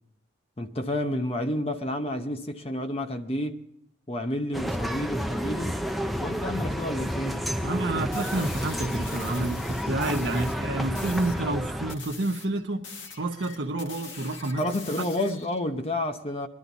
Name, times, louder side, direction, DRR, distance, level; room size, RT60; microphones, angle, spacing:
voice 1, 0.6-3.7 4.1-5.8 6.2-7.5 14.0-14.1 14.6-16.5, left 1 dB, 30° left, 0.9 m, -30 dB
sound 1, 4.5-12.0, equal, ahead, 0.5 m, -30 dB
voice 2, 7.6-12.9 13.1-14.6, right 2 dB, 70° right, 1.1 m, -29 dB
sound 2, 8.1-10.6 10.9-11.4 11.9-15.6, left 5 dB, 80° left, 1.7 m, -43 dB
21.0 x 12.0 x 4.0 m
head